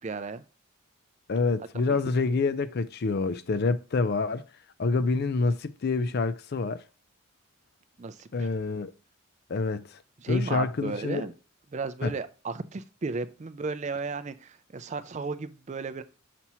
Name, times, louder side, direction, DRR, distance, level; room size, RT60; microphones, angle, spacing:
voice 1, 0.0-0.4 1.9-2.0 8.0-8.5 10.2-11.3 11.7-16.0, right 4 dB, 30° right, 0.4 m, -34 dB
voice 2, 1.3-4.4 4.8-6.8 8.3-8.9 9.5-9.9 10.3-11.3 12.0-12.1, left 3 dB, 45° left, 0.4 m, -27 dB
6.0 x 2.8 x 5.5 m
head